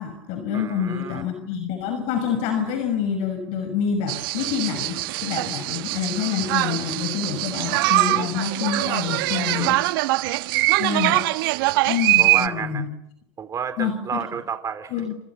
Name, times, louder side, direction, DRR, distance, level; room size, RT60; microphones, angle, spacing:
voice 1, 0.0-9.8 10.8-11.3 11.8-12.9 13.8-14.2 14.9-15.1, left 7 dB, 55° left, 8 dB, 6.0 m, -27 dB
voice 2, 0.5-1.2 9.6-9.8 12.2-12.9 13.4-14.9, right 7 dB, 25° right, 9 dB, 3.9 m, -31 dB
sound 1, 4.1-12.5, right 20 dB, 65° right, 1.5 m, -23 dB
29.0 x 28.0 x 7.4 m, 0.76 s
hypercardioid pair, 105°, 13 cm